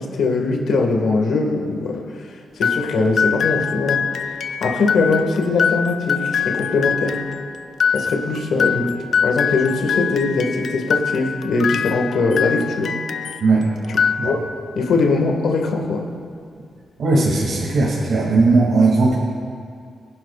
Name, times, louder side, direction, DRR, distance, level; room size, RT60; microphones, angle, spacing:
voice 1, 0.0-4.0 4.6-7.2 7.9-12.9 14.2-14.4 14.8-16.0, left 3 dB, 90° left, 2 dB, 1.8 m, -21 dB
sound 1, 2.6-13.5 13.8-14.7, left 7 dB, 65° left, 0.4 m, -23 dB
voice 2, 17.0-19.2, right 3 dB, 75° right, -5 dB, 2.4 m, -17 dB
24.5 x 11.0 x 2.4 m, 2.2 s
wide cardioid pair, 145°, 0 cm